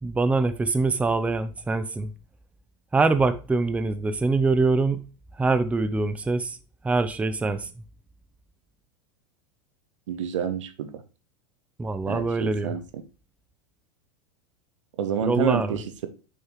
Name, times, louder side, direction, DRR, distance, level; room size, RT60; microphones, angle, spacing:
voice 1, 0.0-2.1 2.9-5.0 5.3-6.6 6.8-7.7 11.8-12.8 15.2-15.8, right 3 dB, 10° right, 0.5 m, -24 dB
voice 2, 10.1-11.0 12.1-12.8 15.0-16.1, right 7 dB, 80° right, 1.0 m, -28 dB
6.6 x 5.4 x 3.0 m
hypercardioid pair, 110°, 16 cm